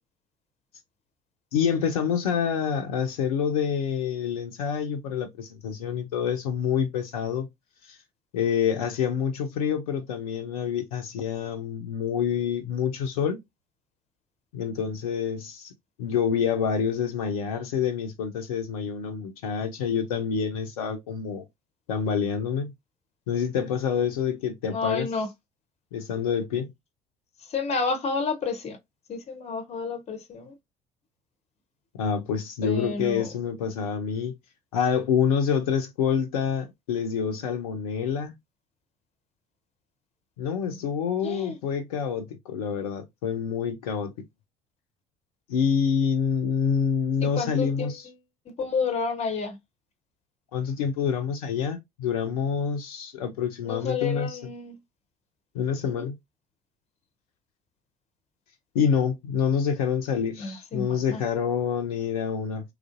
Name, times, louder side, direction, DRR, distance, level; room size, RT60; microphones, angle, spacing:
voice 1, 1.5-7.5 7.9-8.0 8.3-13.4 14.5-15.7 16.0-21.4 21.9-22.7 23.3-25.1 25.9-26.7 31.9-34.3 34.7-38.3 40.4-44.1 45.5-48.1 50.5-54.4 55.5-56.1 58.7-62.7, left 7 dB, 70° left, 0.5 m, -27 dB
voice 2, 24.7-25.3 27.4-28.8 29.1-30.6 32.6-33.3 41.2-41.6 47.4-48.1 48.5-49.6 53.6-54.8 55.9-56.0 60.4-61.2, left 4 dB, 35° left, 0.7 m, -30 dB
3.1 x 2.4 x 2.4 m
figure-of-eight pair, 55°, 19 cm